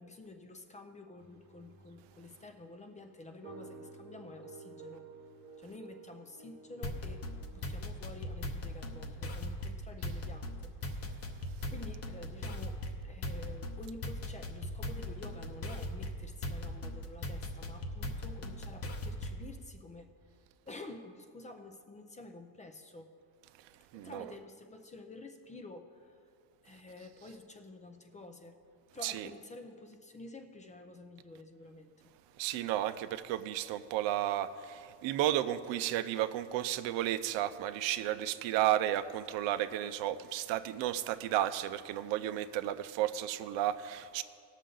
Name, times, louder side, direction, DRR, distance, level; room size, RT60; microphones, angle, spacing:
voice 1, 0.0-5.1 5.6-7.2 7.5-10.8 11.1-11.2 11.7-20.1 20.7-23.1 23.9-26.2 26.6-28.6 28.9-31.9, left 2 dB, 15° left, 6 dB, 0.4 m, -50 dB
sound 1, 1.2-7.7, right 4 dB, 40° right, 1.0 m, -53 dB
sound 2, 6.8-19.5, left 1 dB, 35° left, 0.8 m, -39 dB
voice 2, 23.9-24.3 29.0-29.3 32.4-44.2, right 12 dB, 85° right, 12 dB, 0.6 m, -33 dB
17.5 x 6.5 x 3.8 m, 2.3 s
cardioid pair, 160°, 43 cm